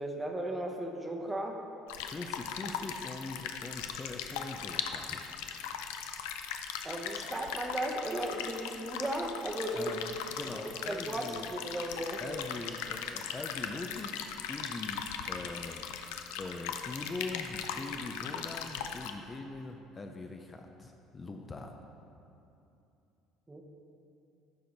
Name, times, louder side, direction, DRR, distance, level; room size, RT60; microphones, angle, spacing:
voice 1, 0.0-1.6 6.8-10.0 10.5-12.2 23.5-23.6, right 1 dB, 15° right, 2 dB, 0.9 m, -36 dB
sound 1, 1.9-19.1, left 8 dB, 85° left, 0.4 m, -39 dB
voice 2, 2.0-5.2 9.7-10.0 10.3-11.5 12.2-15.9 16.4-21.8, left 3 dB, 25° left, 4 dB, 0.5 m, -42 dB
11.5 x 4.4 x 4.0 m, 2.8 s
supercardioid pair, 95°, 0 cm